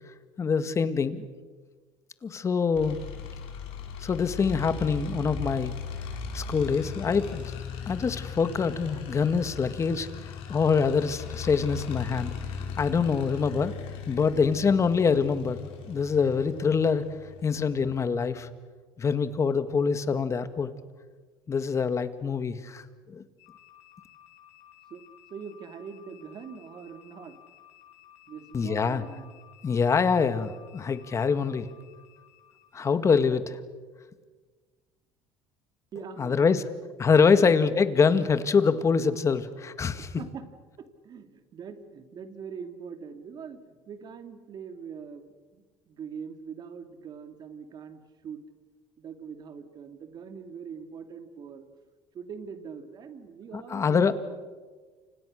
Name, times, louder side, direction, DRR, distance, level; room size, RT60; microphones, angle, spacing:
voice 1, 0.4-1.3 2.2-3.0 4.0-5.7 6.3-7.5 7.9-12.3 12.8-13.7 14.1-17.1 17.4-18.5 19.0-20.7 21.5-23.2 28.5-29.0 29.6-31.7 32.7-33.6 36.2-36.6 37.0-40.1 53.5-54.1, left 5 dB, 30° left, 11 dB, 1.9 m, -25 dB
sound 1, 2.7-18.3, left 5 dB, 70° left, 5.4 m, -38 dB
sound 2, 23.4-32.7, left 12 dB, 85° left, 6.8 m, -55 dB
voice 2, 25.3-27.4 28.3-29.3 35.9-36.5 37.3-37.5 39.9-40.5 40.8-48.4 49.0-51.7 52.1-54.1, right 6 dB, 45° right, 8 dB, 2.8 m, -42 dB
29.5 x 26.5 x 6.6 m, 1.4 s
supercardioid pair, 105°, 10 cm